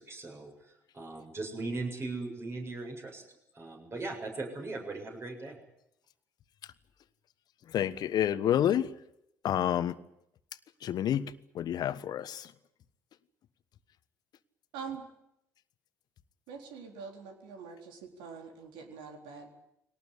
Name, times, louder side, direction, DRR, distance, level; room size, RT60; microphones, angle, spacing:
voice 1, 0.0-3.2 3.5-5.6, right 3 dB, 35° right, 3 dB, 7.6 m, -39 dB
voice 2, 7.7-8.9 9.4-10.0 10.8-12.5, left 10 dB, 55° left, 14 dB, 1.3 m, -29 dB
voice 3, 14.7-15.0 16.5-19.5, right 6 dB, 70° right, 4 dB, 4.1 m, -44 dB
22.0 x 18.5 x 9.9 m, 0.79 s
hypercardioid pair, 55°, 8 cm